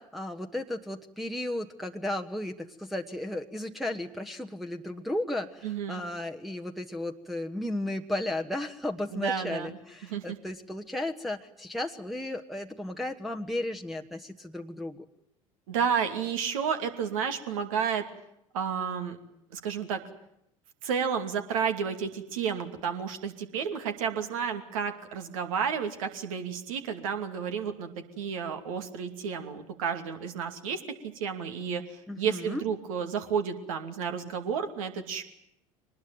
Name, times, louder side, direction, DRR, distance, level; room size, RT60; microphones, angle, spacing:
voice 1, 0.0-15.0 32.1-32.6, left 1 dB, ahead, 2 dB, 1.3 m, -34 dB
voice 2, 5.6-6.0 9.1-9.7 10.1-10.4 15.7-18.0 18.5-19.2 19.5-20.0 20.8-27.9 28.2-30.8 31.1-35.2, right 7 dB, 65° right, 7 dB, 2.6 m, -31 dB
23.5 x 20.0 x 9.2 m, 0.79 s
figure-of-eight pair, 70°, 18 cm